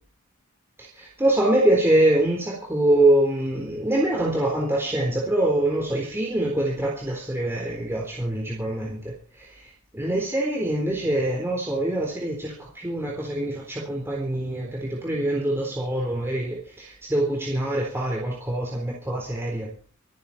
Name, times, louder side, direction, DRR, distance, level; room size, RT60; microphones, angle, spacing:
voice 1, 0.8-9.6 9.9-19.7, right 1 dB, 10° right, -2 dB, 3.9 m, -24 dB
26.0 x 10.5 x 4.3 m, 0.39 s
head